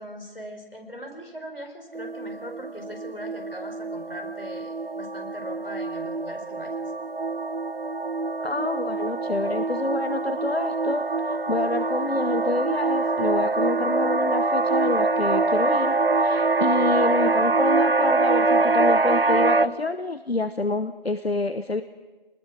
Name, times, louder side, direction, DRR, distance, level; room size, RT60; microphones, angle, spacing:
voice 1, 0.0-6.7, equal, 65° left, 3 dB, 4.7 m, -40 dB
sound 1, 1.9-19.7, right 3 dB, 70° right, 0.8 m, -24 dB
voice 2, 8.4-21.8, left 3 dB, 90° left, 11 dB, 1.0 m, -27 dB
24.5 x 20.0 x 6.2 m, 1.2 s
figure-of-eight pair, 175°, 30 cm